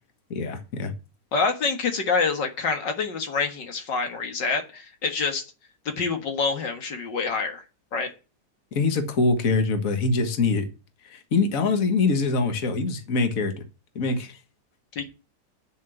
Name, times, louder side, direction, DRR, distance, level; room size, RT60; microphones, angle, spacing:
voice 1, 0.3-0.9 8.7-10.7 11.1-13.5 14.0-14.4, left 3 dB, 50° left, 7 dB, 1.9 m, -24 dB
voice 2, 1.3-5.4 5.9-7.6 7.9-8.1 15.0-15.1, left 4 dB, 85° left, 5 dB, 2.4 m, -26 dB
8.5 x 6.9 x 7.9 m, 0.32 s
omnidirectional pair, 1.9 m